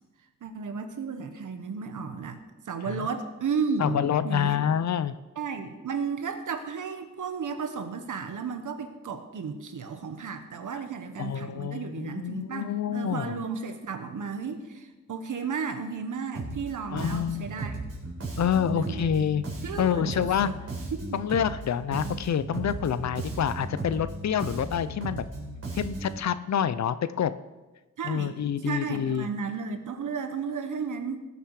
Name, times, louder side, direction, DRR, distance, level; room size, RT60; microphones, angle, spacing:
voice 1, 0.4-4.6 5.4-17.8 18.7-19.1 19.6-20.5 20.9-21.2 28.0-28.3 28.6-31.2, right 5 dB, 70° right, 7 dB, 1.3 m, -33 dB
voice 2, 3.8-5.1 11.2-13.4 16.9-17.5 18.4-19.4 19.8-20.5 21.1-25.2 25.7-27.3 28.0-29.3, left 8 dB, 55° left, 14 dB, 0.6 m, -27 dB
Bass guitar, 16.3-16.7 17.0-21.6 21.9-26.2, right 2 dB, 50° right, 4.1 m, -36 dB
19.5 x 6.9 x 4.8 m, 1.2 s
wide cardioid pair, 140°, 32 cm